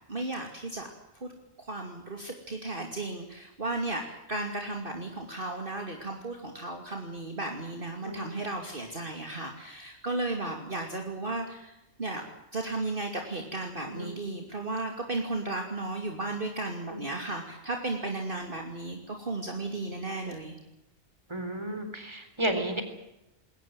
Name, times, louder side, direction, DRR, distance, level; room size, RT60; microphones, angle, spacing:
voice 1, 0.1-0.9 1.1-1.3 1.6-11.7 12.0-12.2 12.5-20.5, right 2 dB, 40° right, 3 dB, 2.9 m, -34 dB
voice 2, 8.0-8.4 13.9-14.2 16.9-17.0 21.3-22.8, right 1 dB, 20° right, 8 dB, 4.0 m, -33 dB
21.5 x 19.0 x 9.2 m, 0.88 s
omnidirectional pair, 1.4 m